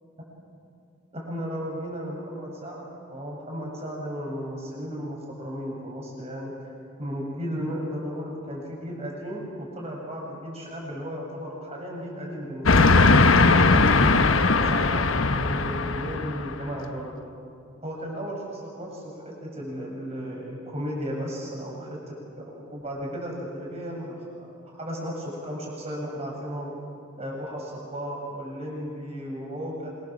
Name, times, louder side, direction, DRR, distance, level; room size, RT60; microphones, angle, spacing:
voice 1, 1.1-2.8 3.1-6.7 7.0-13.0 13.7-17.1 17.8-26.7 27.2-29.9, equal, 30° right, -2 dB, 7.3 m, -35 dB
Train, 12.7-16.6, left 3 dB, 85° left, 1.1 m, -19 dB
26.5 x 24.0 x 7.5 m, 2.4 s
head